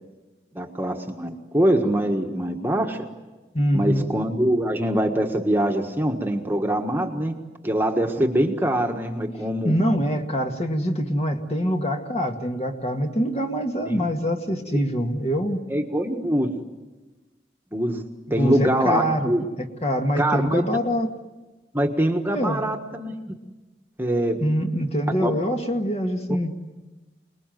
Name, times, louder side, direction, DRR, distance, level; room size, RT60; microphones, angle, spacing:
voice 1, 0.5-3.0 3.7-7.3 7.6-9.8 13.9-14.1 15.7-16.5 17.7-18.0 18.3-19.4 20.2-20.6 21.7-23.4 24.0-24.4 25.2-25.3, right 1 dB, 10° right, 3 dB, 1.5 m, -23 dB
voice 2, 3.5-4.1 9.6-15.6 18.4-21.1 22.3-22.6 24.4-26.5, equal, 35° left, 4 dB, 1.9 m, -24 dB
28.0 x 20.5 x 9.3 m, 1.2 s
head